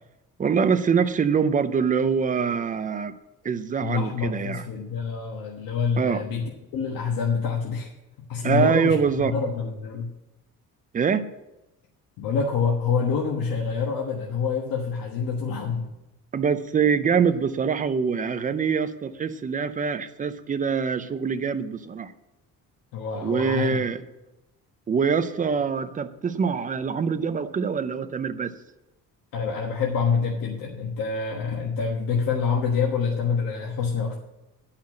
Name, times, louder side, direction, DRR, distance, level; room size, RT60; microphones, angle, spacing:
voice 1, 0.4-3.1 3.4-4.7 6.0-6.3 8.4-9.3 10.9-11.3 16.3-22.1 23.2-24.0 24.9-28.5, right 6 dB, 25° right, 11 dB, 0.5 m, -24 dB
voice 2, 3.8-6.4 6.7-7.9 8.3-8.9 9.2-10.1 12.2-15.9 22.9-23.8 29.3-34.2, left 5 dB, 80° left, -1 dB, 1.4 m, -26 dB
10.5 x 5.7 x 7.5 m, 0.97 s
cardioid pair, 165°, 33 cm